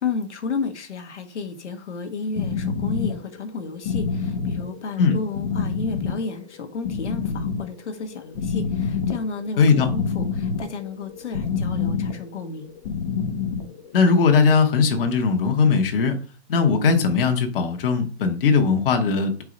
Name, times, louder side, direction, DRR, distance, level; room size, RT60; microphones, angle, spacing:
voice 1, 0.0-12.7, left 4 dB, 90° left, 6 dB, 1.3 m, -32 dB
sound 1, 2.3-14.2, left 5 dB, 25° left, 0.5 m, -28 dB
voice 2, 9.6-9.9 13.9-16.2 16.5-19.4, left 5 dB, 55° left, 5 dB, 1.1 m, -19 dB
4.7 x 4.2 x 5.0 m, 0.39 s
hypercardioid pair, 155°, 34 cm